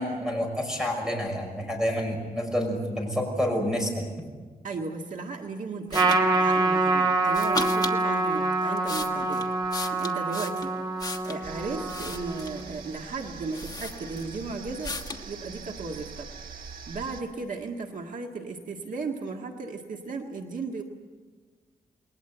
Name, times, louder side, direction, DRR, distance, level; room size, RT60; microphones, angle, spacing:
voice 1, 0.0-4.0, equal, 5° right, 1 dB, 6.1 m, -28 dB
voice 2, 4.6-9.5 10.0-10.8 11.2-15.0 15.2-16.3 16.9-20.8, right 4 dB, 60° right, 2 dB, 1.8 m, -35 dB
sound 1, 5.9-6.2 7.3-8.0 8.6-11.4 11.9-12.7 13.2-13.3 13.5-14.4 14.8-15.3, left 3 dB, 25° left, 1.4 m, -36 dB
Trumpet, 5.9-12.6, right 3 dB, 30° right, 3.1 m, -26 dB
sound 2, 11.4-17.2, right 6 dB, 90° right, 3.1 m, -43 dB
29.0 x 21.0 x 8.0 m, 1.4 s
wide cardioid pair, 180°, 15 cm